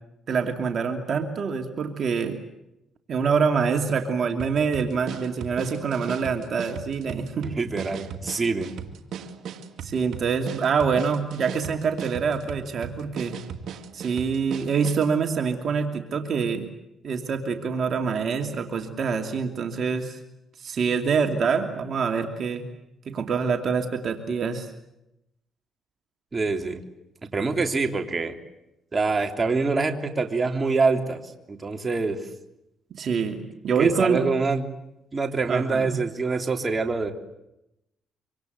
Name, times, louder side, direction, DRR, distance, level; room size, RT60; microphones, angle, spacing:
voice 1, 0.3-2.4 3.1-7.5 9.8-13.3 13.9-16.7 17.0-20.2 20.6-22.6 23.1-24.7 33.0-34.2 35.5-36.0, right 5 dB, 55° right, 5 dB, 2.7 m, -25 dB
sound 1, 4.4-15.1, right 7 dB, 75° right, 2.3 m, -37 dB
voice 2, 7.4-8.7 26.3-26.8 27.3-28.4 28.9-31.2 31.5-32.2 33.7-34.7 35.1-37.1, right 4 dB, 30° right, 4 dB, 3.3 m, -25 dB
26.0 x 25.5 x 8.0 m, 0.86 s
cardioid pair, 90°, 0 cm